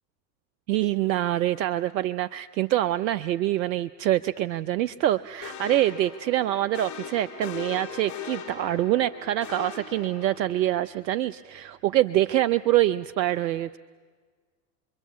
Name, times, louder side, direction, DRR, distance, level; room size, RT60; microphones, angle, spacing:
voice 1, 0.7-13.8, right 13 dB, 90° right, 13 dB, 0.7 m, -25 dB
sound 1, 5.2-12.4, right 2 dB, 15° right, 2.9 m, -54 dB
sound 2, 5.4-10.7, left 8 dB, 35° left, 4.7 m, -40 dB
27.0 x 23.0 x 8.4 m, 1.5 s
hypercardioid pair, 90°, 50 cm